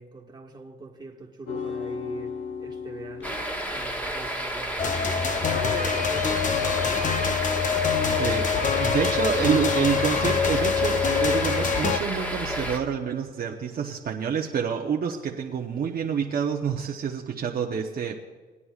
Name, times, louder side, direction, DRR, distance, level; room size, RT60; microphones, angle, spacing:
voice 1, 0.0-7.8, right 3 dB, 20° right, 1.6 m, -42 dB
sound 1, 1.5-4.3 5.7-5.8, left 6 dB, 75° left, 1.5 m, -35 dB
sound 2, 3.2-12.8, equal, 10° left, 1.5 m, -31 dB
sound 3, 4.8-12.0, left 6 dB, 40° left, 0.7 m, -25 dB
voice 2, 8.2-8.5 8.8-18.2, right 7 dB, 50° right, 0.9 m, -27 dB
19.5 x 9.7 x 2.4 m
cardioid pair, 90°, 20 cm